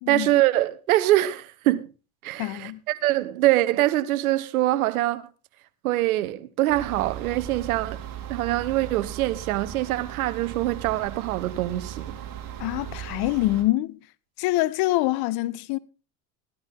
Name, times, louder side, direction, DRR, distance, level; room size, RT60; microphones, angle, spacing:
voice 1, 0.1-1.9 2.2-5.2 5.8-8.0 8.3-12.1, right 15 dB, 85° right, 1.1 m, -24 dB
voice 2, 2.4-2.8 12.6-14.0 14.4-15.8, left 17 dB, 60° left, 0.8 m, -25 dB
sound 1, 6.7-13.6, right 10 dB, 50° right, 3.5 m, -37 dB
15.0 x 11.0 x 3.6 m
hypercardioid pair, 80°, 42 cm